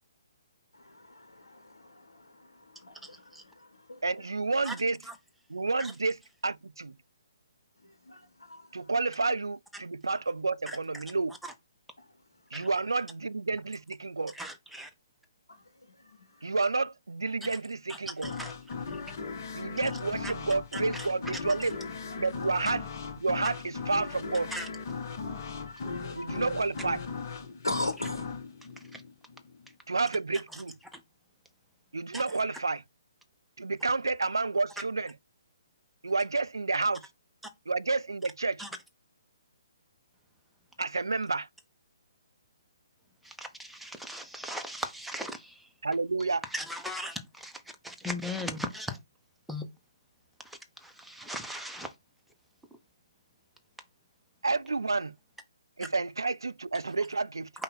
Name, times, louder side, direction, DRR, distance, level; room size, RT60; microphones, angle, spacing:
voice 1, 0.7-4.3 7.8-8.9 12.0-12.8 15.5-16.7 22.1-22.5 23.4-23.5 25.3-26.5 27.6-28.3, left 2 dB, 70° left, 0.9 m, -41 dB
voice 2, 3.0-3.4 4.6-4.8 5.0-5.2 5.8-5.9 10.7-11.0 11.4-11.5 12.5-12.7 14.3-14.9 17.4-17.6 17.9-18.5 18.9-19.0 19.9-20.3 20.7-21.6 24.5-24.7 28.9-29.0 30.5-30.6 30.9-31.0 32.1-32.2 38.6-38.7 43.2-45.7 46.5-49.0 49.5-49.7 50.4-52.0, equal, ahead, 0.6 m, -39 dB
voice 3, 4.0-5.0 5.5-7.0 8.7-11.3 12.5-14.3 16.4-18.3 19.5-21.8 22.2-22.8 23.2-24.5 26.2-27.0 29.9-30.7 31.9-32.8 33.6-35.1 36.0-37.1 37.7-38.6 40.8-41.5 45.8-46.4 54.4-55.2 55.8-57.5, right 3 dB, 70° right, 0.3 m, -30 dB
sound 1, 18.2-29.7, left 5 dB, 40° left, 0.9 m, -38 dB
5.4 x 2.2 x 3.9 m
figure-of-eight pair, 130°, 2 cm